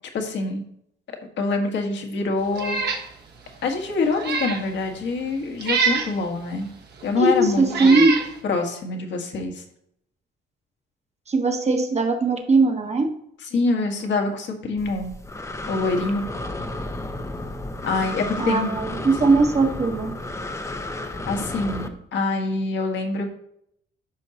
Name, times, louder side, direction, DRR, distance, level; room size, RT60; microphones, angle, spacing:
voice 1, 0.1-0.6 1.4-2.8 3.6-6.7 7.0-8.1 8.4-9.6 13.5-15.1 15.7-16.3 17.8-18.8 21.3-23.3, left 3 dB, 65° left, 3 dB, 1.6 m, -25 dB
Meow, 2.5-3.0 3.5-3.6 4.1-4.6 5.6-6.1 7.0-7.1 7.7-8.3, right 5 dB, 55° right, 1.5 m, -25 dB
voice 2, 7.2-8.1 11.3-13.1 18.4-20.1, right 3 dB, 35° right, 4 dB, 1.3 m, -19 dB
Breathing, 14.8-21.9, left 2 dB, 15° left, 0.8 m, -32 dB
12.0 x 5.3 x 2.9 m, 0.72 s
cardioid pair, 90°, 20 cm